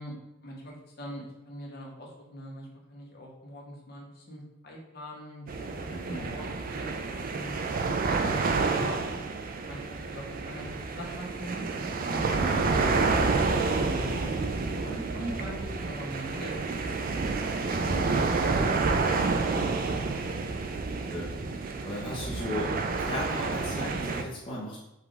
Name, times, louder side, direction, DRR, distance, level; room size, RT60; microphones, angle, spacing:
voice 1, 0.0-6.5 6.8-7.6 8.1-12.9 13.7-17.1 17.5-19.0, equal, 50° left, -2 dB, 1.0 m, -42 dB
sound 1, 5.5-24.2, right 4 dB, 40° right, 0.4 m, -29 dB
voice 2, 5.9-6.3 12.4-12.7 21.1-21.3 21.8-24.8, left 1 dB, 25° left, -7 dB, 0.8 m, -36 dB
5.4 x 2.5 x 3.8 m, 0.93 s
head